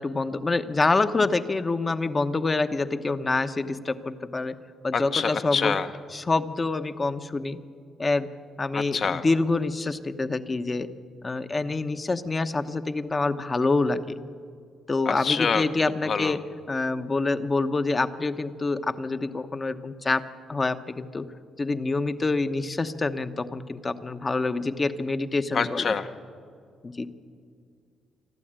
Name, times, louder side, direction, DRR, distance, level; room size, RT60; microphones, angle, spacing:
voice 1, 0.0-4.6 4.8-5.8 6.1-7.6 8.0-8.3 8.6-10.9 11.2-14.1 14.9-16.4 16.7-21.3 21.6-26.0 26.8-27.1, left 3 dB, 25° left, 10 dB, 1.1 m, -26 dB
voice 2, 4.9-5.9 8.7-9.2 15.1-15.6 16.1-16.4 25.5-26.1, left 6 dB, 50° left, 9 dB, 1.3 m, -26 dB
27.0 x 12.0 x 8.9 m, 2.2 s
cardioid pair, 90°, 0 cm